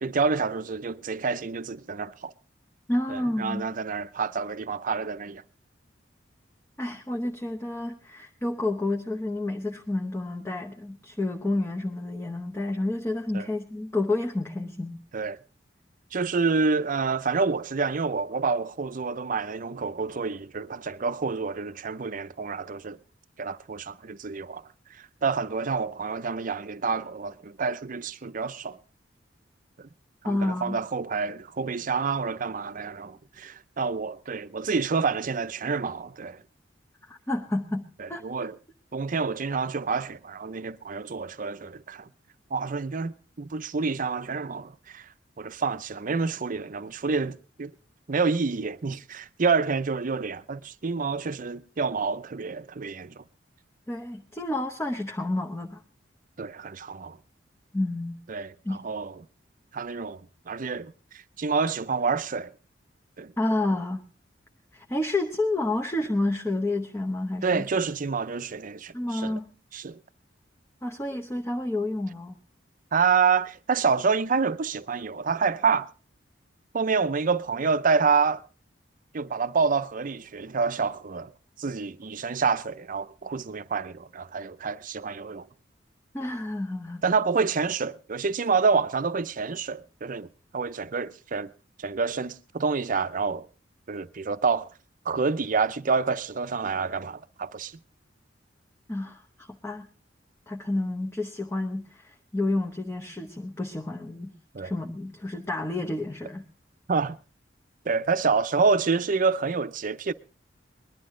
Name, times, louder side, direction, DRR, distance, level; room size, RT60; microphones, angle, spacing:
voice 1, 0.0-2.3 3.1-5.4 13.3-13.5 15.1-15.4 16.1-23.0 23.4-24.6 25.2-28.8 30.2-36.4 38.0-38.5 38.9-42.1 42.5-45.1 45.4-47.7 48.1-53.2 56.4-57.2 58.3-59.1 59.7-60.2 60.5-60.9 61.4-62.5 63.2-63.3 67.4-69.4 69.7-70.0 72.9-75.9 76.7-78.4 79.1-81.3 81.6-85.5 87.0-90.3 90.5-91.5 91.8-93.4 93.9-94.7 95.1-97.7 104.5-104.7 106.9-107.2 107.9-110.1, right 5 dB, 45° right, 0.6 m, -28 dB
voice 2, 2.9-3.7 6.8-15.0 30.2-30.8 37.1-38.5 53.9-55.8 57.7-58.2 58.6-58.8 63.4-64.0 64.7-67.7 68.9-69.5 70.8-72.3 86.1-87.0 98.9-99.9 100.5-106.5, left 2 dB, 15° left, 0.9 m, -30 dB
20.5 x 11.5 x 3.7 m
head